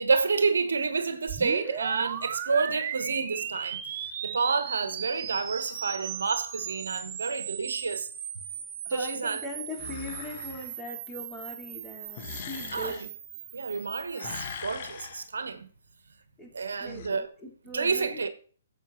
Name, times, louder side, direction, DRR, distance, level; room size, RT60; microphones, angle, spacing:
voice 1, 0.0-8.1 8.9-9.4 12.7-13.1 13.5-15.7 16.5-17.3 17.7-18.3, right 4 dB, 75° right, 1.2 m, -29 dB
sound 1, 1.3-14.6, right 9 dB, 35° right, 1.7 m, -38 dB
voice 2, 1.4-1.8 8.9-13.1 16.4-18.3, left 1 dB, 10° left, 4.0 m, -41 dB
sound 2, 9.8-10.7 12.1-13.1 14.1-15.3 16.7-17.1, left 7 dB, 45° left, 1.4 m, -41 dB
11.5 x 8.0 x 4.5 m
figure-of-eight pair, 130°, 0 cm